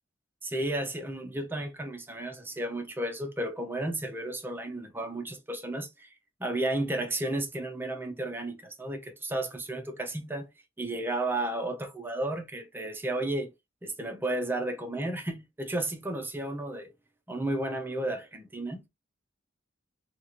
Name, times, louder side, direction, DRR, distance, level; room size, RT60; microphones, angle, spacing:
voice 1, 0.4-6.1 6.4-10.5 10.8-13.5 13.8-16.9 17.3-18.9, right 1 dB, 10° right, 0.5 m, -33 dB
2.8 x 2.4 x 2.8 m
head